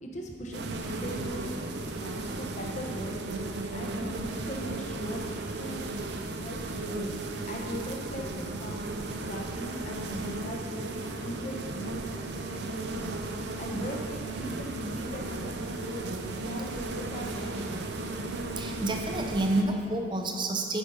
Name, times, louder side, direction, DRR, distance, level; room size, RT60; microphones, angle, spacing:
voice 1, 0.0-1.5 1.8-3.3 3.7-5.2 5.6-5.9 6.4-8.8 9.2-13.2 13.4-16.0 16.4-18.3, equal, 40° left, 0 dB, 1.0 m, -40 dB
sound 1, 0.5-19.6, right 2 dB, 70° right, 0.6 m, -35 dB
voice 2, 18.5-20.8, right 2 dB, 25° right, 3 dB, 0.7 m, -29 dB
8.1 x 5.1 x 5.5 m, 2.1 s
head